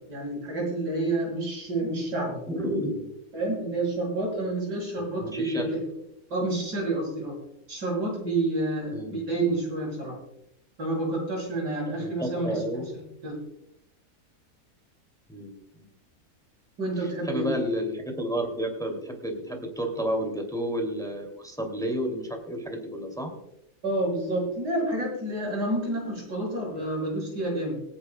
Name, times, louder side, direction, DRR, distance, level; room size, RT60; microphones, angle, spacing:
voice 1, 0.1-2.4 3.3-5.8 6.3-7.4 7.7-10.2 10.8-12.8 13.2-13.4 16.8-17.5 23.8-27.8, right 2 dB, 90° right, -2 dB, 6.4 m, -29 dB
voice 2, 2.5-3.1 5.0-5.7 8.9-9.2 12.0-12.9 15.3-15.9 17.0-23.3, equal, ahead, 2 dB, 2.3 m, -31 dB
26.0 x 10.0 x 2.2 m, 0.81 s
omnidirectional pair, 1.8 m